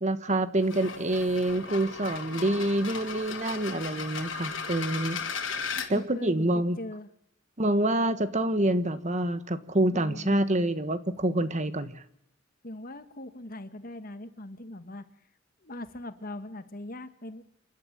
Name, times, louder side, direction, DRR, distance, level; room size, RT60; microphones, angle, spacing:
voice 1, 0.0-5.2 5.9-6.8 7.6-11.9, right 1 dB, 40° right, 11 dB, 1.5 m, -27 dB
sound 1, 0.6-5.9, left 5 dB, 85° left, 3.2 m, -36 dB
voice 2, 5.9-7.1 9.9-10.5 12.6-15.1 15.6-17.4, left 1 dB, 50° left, 10 dB, 1.7 m, -40 dB
28.5 x 12.0 x 8.8 m, 0.76 s
head